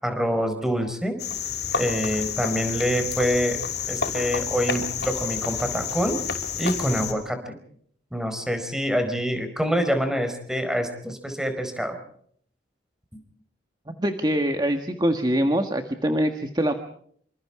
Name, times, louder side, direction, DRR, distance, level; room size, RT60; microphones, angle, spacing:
voice 1, 0.0-1.2 1.8-3.6 3.9-6.2 6.6-7.6 8.1-12.0 13.1-13.2, equal, 5° right, 7 dB, 4.6 m, -26 dB
Cricket, 1.2-7.1, left 6 dB, 65° left, 5.7 m, -29 dB
voice 2, 14.0-16.7, equal, 25° right, 6 dB, 1.5 m, -24 dB
27.5 x 26.5 x 4.9 m, 0.63 s
head